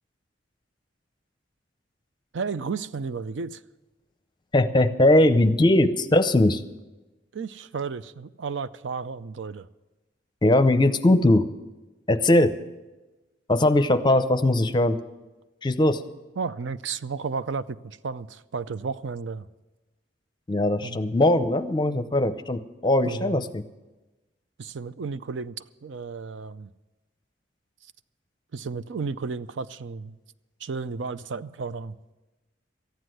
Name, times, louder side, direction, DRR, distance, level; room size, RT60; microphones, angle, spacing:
voice 1, 2.3-3.6 7.3-9.7 16.4-19.5 20.8-21.0 23.0-23.4 24.6-25.5 25.8-26.7 28.5-30.2 30.6-32.0, right 5 dB, 80° right, 0.5 m, -33 dB
voice 2, 4.5-6.6 10.4-11.5 12.1-12.5 13.5-15.0 15.6-16.0 20.5-23.6, left 1 dB, 25° left, 0.6 m, -20 dB
14.0 x 9.8 x 7.7 m
head